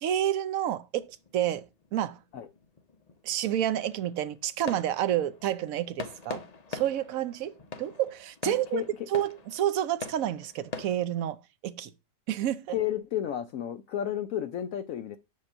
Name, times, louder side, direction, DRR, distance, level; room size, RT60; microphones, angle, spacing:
voice 1, 0.0-1.1 1.3-1.7 1.9-2.2 3.2-6.4 6.7-7.5 7.8-8.8 9.1-11.4 11.6-11.9 12.3-12.7, right 11 dB, 65° right, 1.0 m, -29 dB
sound 1, 1.0-11.0, left 4 dB, 50° left, 0.4 m, -44 dB
voice 2, 8.5-8.9 12.7-15.2, left 10 dB, 70° left, 0.8 m, -32 dB
5.6 x 5.3 x 6.5 m
omnidirectional pair, 1.8 m